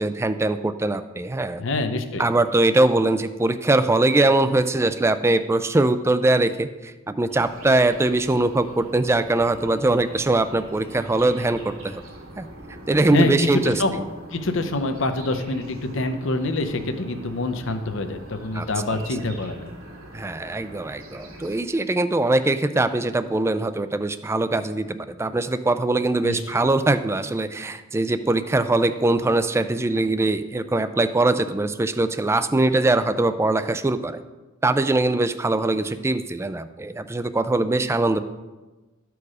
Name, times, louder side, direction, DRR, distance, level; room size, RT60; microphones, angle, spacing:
voice 1, 0.0-1.6 2.2-12.0 12.4-12.5 12.9-13.7 18.5-18.7 20.1-34.2 34.6-38.2, right 2 dB, 15° right, 11 dB, 0.3 m, -22 dB
voice 2, 1.6-2.2 13.1-14.0 14.3-19.7 26.2-26.6, left 2 dB, 65° left, 7 dB, 0.8 m, -26 dB
sound 1, 7.3-21.6, right 1 dB, 90° right, 2.1 m, -43 dB
13.0 x 4.7 x 4.8 m, 1.2 s
head